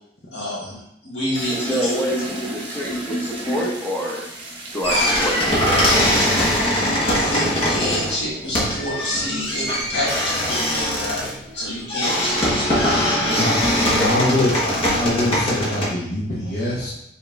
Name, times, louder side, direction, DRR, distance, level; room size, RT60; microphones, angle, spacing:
voice 1, 0.3-1.9 5.0-5.1 6.2-6.3 7.0-11.2 11.5-13.0, left 1 dB, 75° left, -6 dB, 1.8 m, -28 dB
sound 1, 1.3-6.6, right 1 dB, 30° right, 1.0 m, -31 dB
voice 2, 1.6-4.2 4.7-5.4 14.0-14.1, equal, 10° left, -4 dB, 0.8 m, -26 dB
sound 2, 4.8-15.9, equal, 35° left, 1.2 m, -21 dB
voice 3, 13.8-16.9, left 1 dB, 55° left, -8 dB, 1.0 m, -23 dB
5.1 x 4.1 x 2.5 m, 0.79 s
head